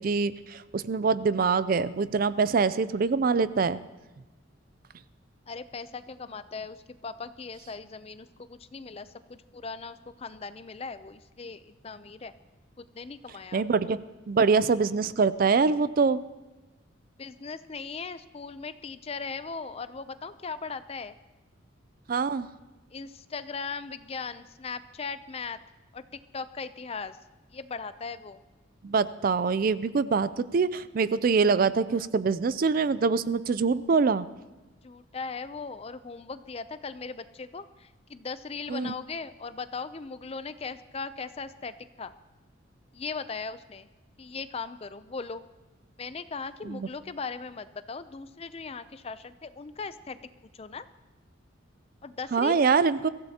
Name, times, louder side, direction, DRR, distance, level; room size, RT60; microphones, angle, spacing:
voice 1, 0.0-3.8 13.5-14.0 14.3-16.2 22.1-22.5 28.8-34.3 38.7-38.9 46.7-46.9 52.3-53.1, right 5 dB, 45° right, 16 dB, 0.4 m, -24 dB
voice 2, 5.5-12.3 12.8-13.6 17.2-21.2 22.9-25.6 25.9-27.2 27.5-28.4 34.8-42.1 42.9-43.9 44.2-45.4 46.0-50.3 50.5-50.9 52.0-52.6, left 4 dB, 30° left, 13 dB, 0.4 m, -38 dB
23.0 x 15.5 x 2.8 m, 1.1 s
head